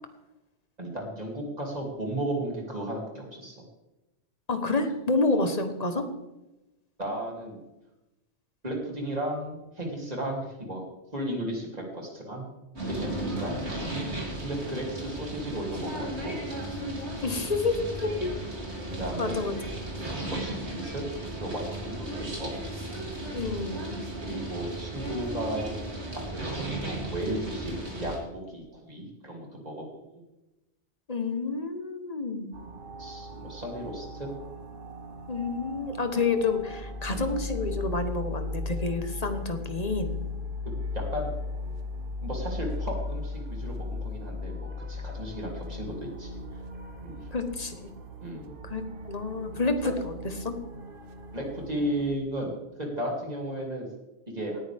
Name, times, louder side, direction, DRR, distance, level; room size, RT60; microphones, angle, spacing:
voice 1, 0.8-3.6 5.3-5.4 7.0-7.6 8.6-10.8 11.1-12.6 12.9-13.7 14.4-16.4 18.8-19.3 20.3-21.0 21.4-22.5 24.2-25.9 26.1-30.0 33.0-34.3 37.1-37.3 40.9-41.3 42.2-46.4 47.0-47.2 48.2-48.5 49.5-49.6 51.3-53.9 54.3-54.6, right 1 dB, 35° right, -1 dB, 3.2 m, -34 dB
voice 2, 4.5-6.1 17.2-18.3 19.2-19.5 23.3-24.0 31.1-32.6 35.3-40.2 47.3-47.9 48.6-50.6, left 3 dB, 35° left, 7 dB, 1.3 m, -29 dB
sound 1, 12.8-28.2, right 1 dB, 65° right, 3.6 m, -35 dB
sound 2, 32.5-52.2, left 2 dB, 50° right, 1.1 m, -37 dB
18.5 x 10.0 x 3.6 m, 0.99 s
omnidirectional pair, 1.2 m